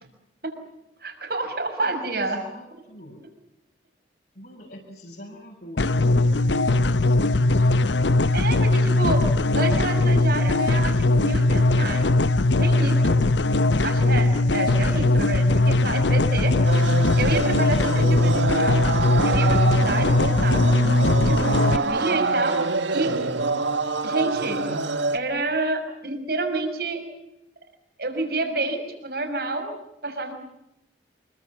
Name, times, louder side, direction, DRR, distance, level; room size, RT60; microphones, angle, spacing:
voice 1, 1.0-2.4 8.3-9.2 9.5-12.1 12.6-13.2 13.8-16.6 17.2-18.8 19.2-20.8 21.2-22.6 22.9-23.1 24.0-24.7 25.1-27.0 28.0-29.7 30.0-30.3, right 2 dB, 55° right, 6 dB, 6.1 m, -28 dB
voice 2, 1.8-3.2 4.3-7.8 8.5-9.4 13.7-14.1, equal, 55° left, -1 dB, 6.3 m, -44 dB
sound 1, 5.8-21.8, left 2 dB, 75° left, 0.9 m, -20 dB
sound 2, 16.6-25.2, right 3 dB, 80° right, 1.7 m, -26 dB
26.5 x 24.0 x 7.2 m, 0.88 s
head